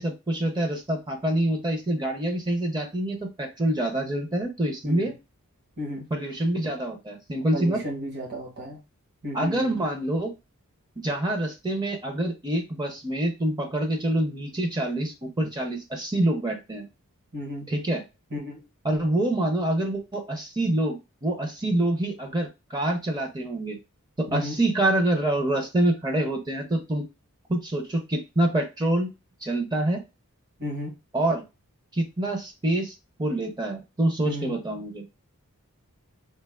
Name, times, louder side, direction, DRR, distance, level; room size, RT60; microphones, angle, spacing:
voice 1, 0.0-5.1 6.1-7.8 9.3-10.3 11.0-16.8 17.7-18.0 18.8-23.8 24.2-27.1 27.5-29.1 29.4-30.0 31.1-31.4 31.9-35.0, right 1 dB, 20° right, 4 dB, 0.5 m, -26 dB
voice 2, 5.8-6.1 7.5-8.8 9.2-9.8 15.4-15.5 17.3-17.7 18.3-18.7 24.3-24.6 30.6-31.0 34.2-34.6, equal, 50° right, 0 dB, 1.1 m, -34 dB
3.3 x 2.4 x 2.3 m, 0.26 s
head